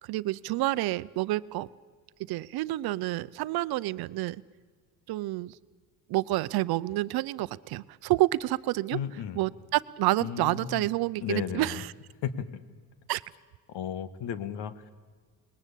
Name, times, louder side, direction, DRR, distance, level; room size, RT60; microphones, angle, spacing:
voice 1, 0.0-1.7 2.3-4.4 5.1-5.6 6.1-9.0 9.4-11.9 13.1-13.2, right 17 dB, 60° right, 16 dB, 0.7 m, -29 dB
voice 2, 8.9-9.4 10.2-10.9 11.2-11.8 12.2-12.6 13.7-14.9, left 9 dB, 75° left, 13 dB, 1.6 m, -34 dB
28.0 x 20.0 x 8.4 m, 1.5 s
cardioid pair, 150°, 41 cm